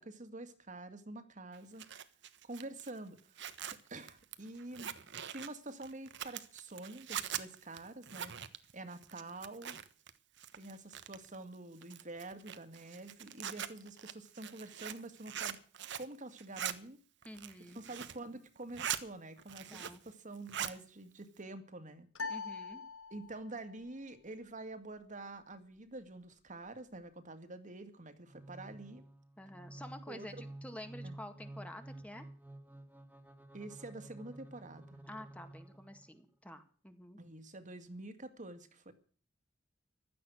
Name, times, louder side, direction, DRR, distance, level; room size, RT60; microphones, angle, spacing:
voice 1, 0.0-1.8 2.4-3.6 3.9-4.9 5.3-9.8 10.5-15.6 15.9-17.0 17.7-22.1 23.1-29.0 30.1-30.4 31.0-31.2 33.5-35.0 37.2-38.9, right 2 dB, 40° right, 8 dB, 2.1 m, -47 dB
Zipper (clothing), 1.5-10.1 10.4-11.4 11.8-16.1 16.4-16.7 17.2-18.2 18.6-19.0 19.4-20.1 20.3-20.8, right 9 dB, 65° right, 1.3 m, -42 dB
voice 2, 17.2-17.9 19.7-20.0 22.3-22.8 29.4-32.3 35.1-37.2, left 1 dB, 5° left, 7 dB, 1.9 m, -49 dB
sound 1, 22.1-23.6, left 4 dB, 80° left, 1.6 m, -42 dB
sound 2, 28.2-36.2, right 1 dB, 10° right, 2.3 m, -51 dB
16.0 x 12.5 x 6.2 m, 0.42 s
head